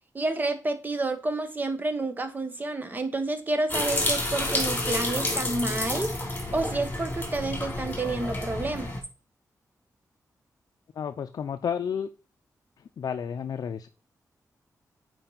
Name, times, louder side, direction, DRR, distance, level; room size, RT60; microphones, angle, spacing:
voice 1, 0.1-6.1 6.5-8.9, right 2 dB, 30° right, 1.1 m, -29 dB
sound 1, 3.7-9.0, left 1 dB, 25° left, 2.9 m, -29 dB
voice 2, 11.0-12.1 13.0-13.9, left 7 dB, 70° left, 0.5 m, -31 dB
8.8 x 4.7 x 4.0 m
wide cardioid pair, 105°, 6 cm